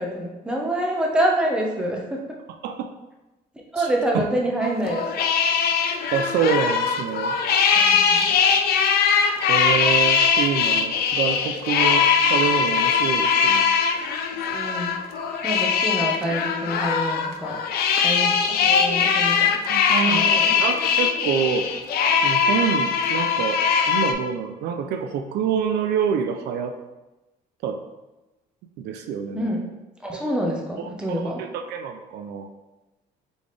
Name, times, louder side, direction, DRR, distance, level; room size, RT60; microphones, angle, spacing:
voice 1, 0.0-2.2 3.7-5.1 7.7-8.3 14.3-15.0 15.4-17.6 18.0-19.6 20.1-20.5 29.3-29.7 30.0-31.4, right 1 dB, 5° right, -1 dB, 0.9 m, -26 dB
sound 1, 4.6-24.1, left 6 dB, 65° left, 0.5 m, -21 dB
voice 2, 6.1-7.4 9.5-13.7 19.7-21.7 22.2-26.7 27.6-27.8 28.8-29.5 30.1-30.2 30.8-32.5, right 7 dB, 80° right, 6 dB, 0.5 m, -26 dB
4.1 x 3.5 x 3.2 m, 1.0 s
cardioid pair, 110°, 17 cm